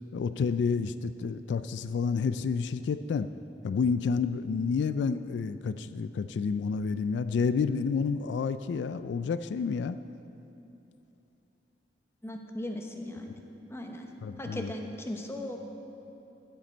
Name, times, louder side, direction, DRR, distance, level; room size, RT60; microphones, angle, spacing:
voice 1, 0.1-3.3 3.6-10.0 14.2-14.7, left 5 dB, 80° left, 12 dB, 0.3 m, -29 dB
voice 2, 12.2-13.4 13.7-14.1 14.4-15.6, left 1 dB, 15° left, 3 dB, 0.9 m, -37 dB
15.0 x 7.9 x 4.4 m, 3.0 s
head